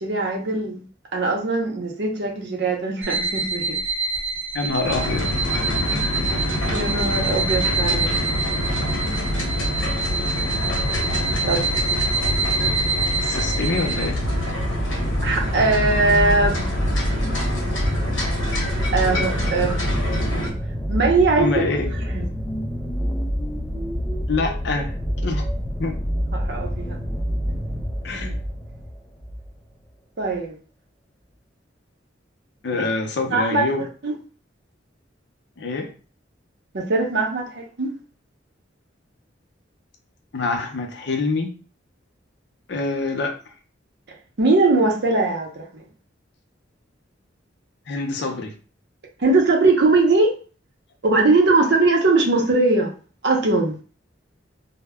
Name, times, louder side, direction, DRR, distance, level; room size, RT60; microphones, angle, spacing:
voice 1, 0.0-0.8 1.1-3.8 6.7-8.2 11.5-11.7 15.2-16.6 18.9-19.8 20.9-21.6 21.9-22.3 26.3-27.0 30.2-30.5 32.7-32.9 33.3-33.6 34.0-34.1 36.7-37.9 44.4-45.7 49.2-50.3 51.0-52.9 53.2-53.8, right 3 dB, 60° right, 1 dB, 0.6 m, -20 dB
sound 1, 3.0-14.0, right 3 dB, 15° right, 1.0 m, -26 dB
voice 2, 4.5-5.3 13.2-14.2 21.4-21.9 24.3-24.9 25.2-25.5 25.8-25.9 28.0-28.4 32.6-33.8 35.6-35.9 40.3-41.5 42.7-43.3 47.9-48.5, left 3 dB, 60° left, 4 dB, 0.5 m, -25 dB
sound 2, 4.8-20.5, equal, 80° left, 0.8 m, -25 dB
sound 3, 14.1-29.5 30.3-30.4, equal, 10° left, 0.3 m, -27 dB
2.1 x 2.0 x 3.4 m, 0.38 s
head